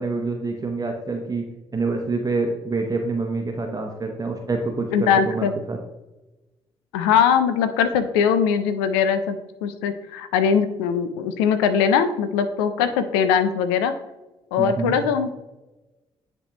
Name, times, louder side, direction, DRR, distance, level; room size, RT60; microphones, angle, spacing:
voice 1, 0.0-1.4 1.7-5.8 14.6-15.0, right 3 dB, 30° right, 3 dB, 0.9 m, -26 dB
voice 2, 4.9-5.5 6.9-13.9 14.5-15.3, left 7 dB, 85° left, 10 dB, 0.4 m, -21 dB
9.9 x 3.4 x 2.9 m, 1.0 s
hypercardioid pair, 45°, 12 cm